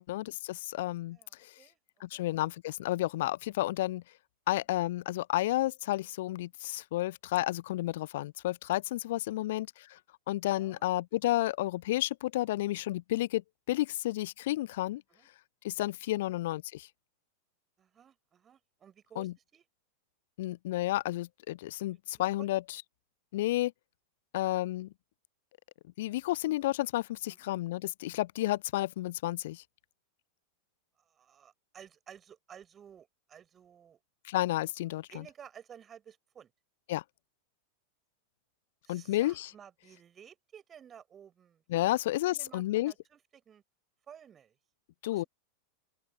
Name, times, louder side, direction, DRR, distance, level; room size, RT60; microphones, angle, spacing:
voice 1, 0.0-1.5 2.0-4.0 4.5-10.0 10.3-13.4 13.7-15.0 15.6-16.9 19.2-19.3 20.4-22.8 23.3-23.7 24.3-24.9 26.0-29.6 34.2-35.3 36.9-37.0 38.9-39.5 41.7-42.9 45.0-45.2, left 16 dB, 55° left, 0.6 m, -31 dB
voice 2, 10.6-10.9 15.1-15.3 16.3-16.4 17.8-19.6 22.1-22.5 26.1-26.2 31.2-34.0 35.1-36.5 38.8-41.9 42.3-43.2 43.5-43.6 44.1-44.6 45.1-45.3, right 8 dB, 25° right, 7.8 m, -54 dB
open air
figure-of-eight pair, 90°, 0 cm